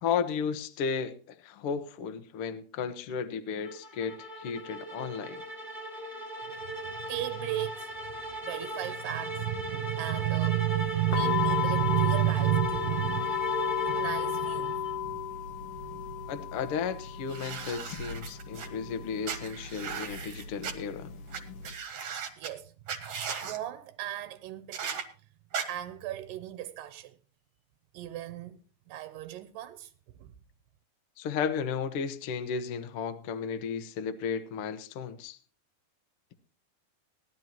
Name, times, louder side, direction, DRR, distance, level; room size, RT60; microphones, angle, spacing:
voice 1, 0.0-5.4 16.3-21.1 31.2-35.4, left 6 dB, 85° left, 1.2 m, -34 dB
sound 1, 3.6-15.0, right 1 dB, ahead, 1.7 m, -37 dB
voice 2, 6.5-8.1 8.4-13.5 13.8-15.4 15.9-16.0 22.4-25.0 25.7-27.2 27.9-28.6 28.9-29.9 30.2-30.3, right 15 dB, 75° right, 2.3 m, -32 dB
sound 2, 11.1-21.7, left 9 dB, 70° left, 1.3 m, -34 dB
sound 3, 17.3-18.7 19.2-20.7 21.3-21.4 21.6-22.5 22.9-23.6 24.7-25.0 25.5-25.6, right 7 dB, 55° right, 2.1 m, -37 dB
18.5 x 11.5 x 2.9 m
omnidirectional pair, 4.2 m